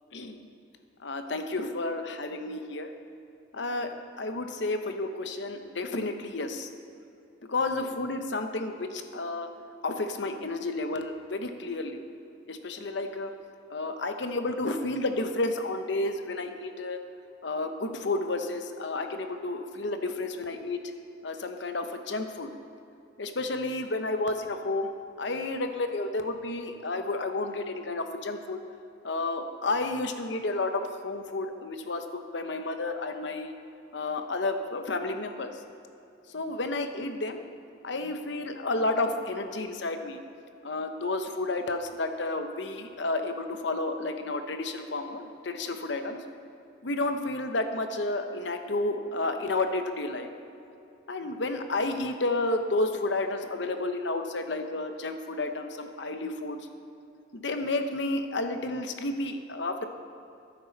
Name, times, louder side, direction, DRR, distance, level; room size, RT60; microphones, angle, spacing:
voice 1, 0.1-0.4 1.0-2.9 3.5-6.7 7.5-9.5 9.8-12.0 12.5-13.3 13.7-17.0 17.4-20.8 21.2-22.5 23.2-24.9 25.2-28.6 29.0-33.5 33.9-35.5 36.3-37.4 37.8-40.2 40.6-46.2 46.8-50.3 51.1-56.6 57.3-59.8, left 2 dB, 65° left, 7 dB, 0.9 m, -31 dB
13.5 x 10.0 x 4.0 m, 2.7 s
head